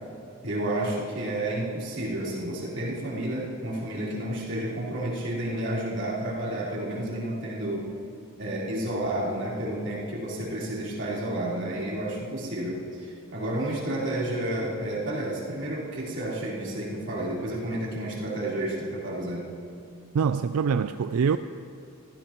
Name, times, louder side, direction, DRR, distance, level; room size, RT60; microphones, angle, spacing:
voice 1, 0.4-7.8 8.4-19.5, right 1 dB, 55° right, -6 dB, 3.8 m, -31 dB
voice 2, 20.1-21.4, right 6 dB, 90° right, 11 dB, 0.4 m, -24 dB
25.0 x 15.0 x 3.0 m, 2.5 s
head